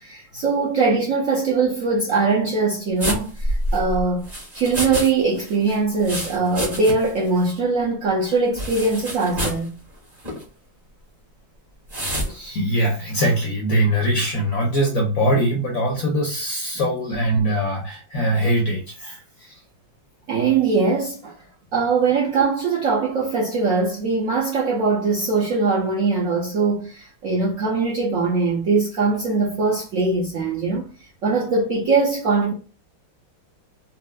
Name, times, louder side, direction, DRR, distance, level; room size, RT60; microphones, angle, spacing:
voice 1, 0.0-4.3 4.5-9.7 20.3-21.3 21.7-30.9 31.2-32.5, right 4 dB, 65° right, 0.8 m, -21 dB
sound 1, 3.0-5.1 5.4-7.2 7.4-7.5 8.6-9.7 10.2-10.4 11.9-12.3, equal, 25° right, 1.0 m, -27 dB
voice 2, 12.3-19.6, right 1 dB, 65° left, 0.8 m, -22 dB
4.2 x 2.1 x 2.2 m
omnidirectional pair, 2.1 m